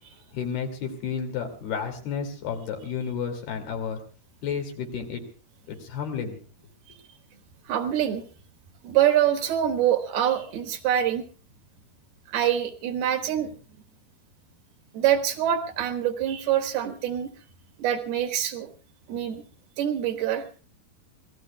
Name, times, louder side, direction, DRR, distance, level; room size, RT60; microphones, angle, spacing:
voice 1, 0.3-4.0 4.4-5.2 5.7-6.4, left 6 dB, 75° left, 4 dB, 4.6 m, -31 dB
voice 2, 7.7-8.2 8.8-11.2 12.3-13.5 14.9-17.3 17.8-18.7 19.1-19.4 19.8-20.4, right 10 dB, 75° right, 7 dB, 3.3 m, -25 dB
26.5 x 17.5 x 2.3 m, 0.40 s
omnidirectional pair, 4.5 m